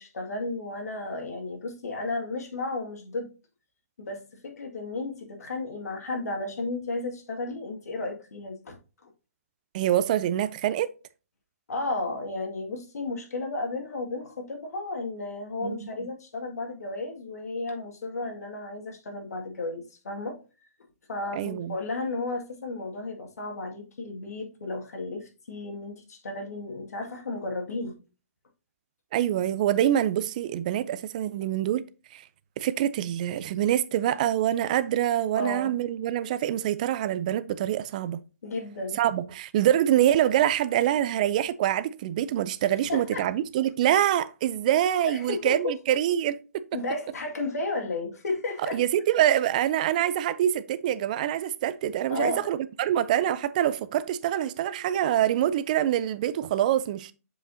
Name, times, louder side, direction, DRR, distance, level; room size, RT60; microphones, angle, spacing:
voice 1, 0.0-3.3 4.0-8.8 9.0-9.1 11.7-20.4 21.1-28.0 35.3-35.8 38.4-39.0 42.9-43.2 45.1-45.8 46.7-48.8 52.1-52.5, left 2 dB, 80° left, 2.0 m, -33 dB
voice 2, 9.7-10.9 15.6-15.9 21.4-21.8 29.1-31.8 32.1-32.2 32.6-38.2 38.9-46.6 48.7-57.1, right 11 dB, 30° right, 0.4 m, -25 dB
7.7 x 4.9 x 2.7 m
hypercardioid pair, 160°, 8 cm